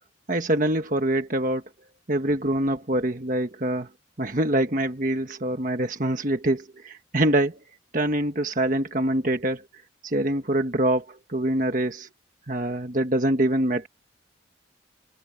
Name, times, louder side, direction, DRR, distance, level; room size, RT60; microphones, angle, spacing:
voice 1, 0.3-1.6 2.1-3.9 4.2-7.6 7.9-9.6 10.0-12.1 12.5-13.9, right 1 dB, 40° right, 1.4 m, -25 dB
head